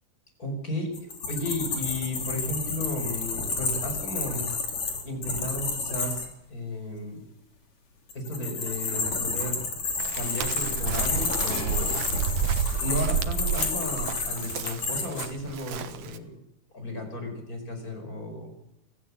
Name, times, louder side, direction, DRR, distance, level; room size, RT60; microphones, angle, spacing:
voice 1, 0.4-1.0 1.3-4.5 5.0-7.2 8.1-9.7 10.1-11.9 12.8-16.3 16.7-18.5, left 1 dB, 25° left, 5 dB, 5.7 m, -34 dB
sound 1, 0.9-6.3 8.1-15.3, left 4 dB, 60° left, 4.6 m, -30 dB
Chirp tweet, 10.0-16.2, right 8 dB, 65° right, 2.5 m, -30 dB
sound 2, 11.5-12.8 13.5-13.6, right 2 dB, 50° right, 4.6 m, -41 dB
25.0 x 15.5 x 8.4 m, 0.88 s
omnidirectional pair, 3.6 m